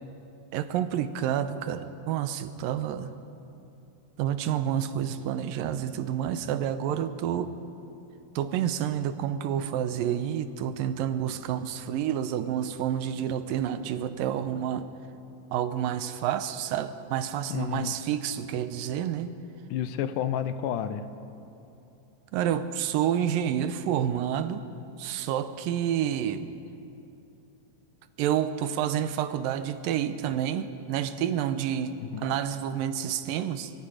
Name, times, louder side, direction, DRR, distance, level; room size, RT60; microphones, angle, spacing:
voice 1, 0.5-3.1 4.2-7.5 8.4-14.9 15.5-19.3 22.3-24.6 25.0-26.5 28.2-33.7, right 10 dB, 85° right, 11 dB, 2.6 m, -29 dB
voice 2, 17.5-17.9 19.7-21.0 32.0-32.3, left 9 dB, 80° left, 11 dB, 2.2 m, -30 dB
24.5 x 23.0 x 5.0 m, 2.8 s
omnidirectional pair, 3.9 m